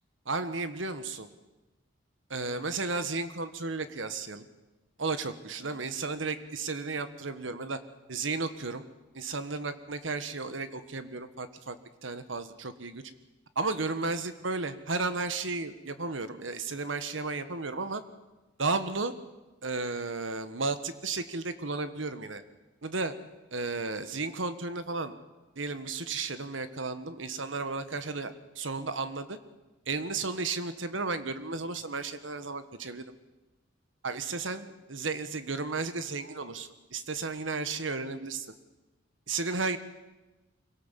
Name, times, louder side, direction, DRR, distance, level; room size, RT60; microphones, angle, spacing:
voice 1, 0.2-1.3 2.3-4.5 5.0-7.8 8.1-8.9 9.1-13.0 13.5-18.0 18.6-19.1 19.6-22.4 22.8-23.1 23.5-25.2 25.5-29.4 29.9-33.1 34.0-38.5 39.3-39.8, right 3 dB, 80° right, 11 dB, 1.5 m, -33 dB
25.0 x 17.5 x 7.5 m, 1.1 s
head